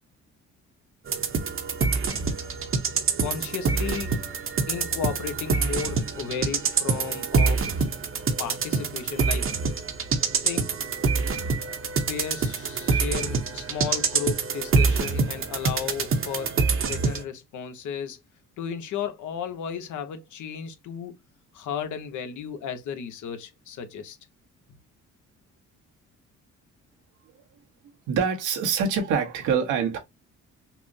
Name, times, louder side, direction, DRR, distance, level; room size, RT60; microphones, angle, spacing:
sound 1, 1.1-17.2, right 4 dB, 45° right, 0.8 m, -26 dB
voice 1, 3.2-4.1 4.7-7.8 8.4-9.5 10.4-10.7 12.1-16.5 16.8-18.2 18.6-21.1 21.5-24.2, left 7 dB, 75° left, 0.9 m, -34 dB
voice 2, 28.1-30.0, right 6 dB, 85° right, 1.1 m, -25 dB
5.8 x 2.0 x 2.6 m
cardioid pair, 90°, 30 cm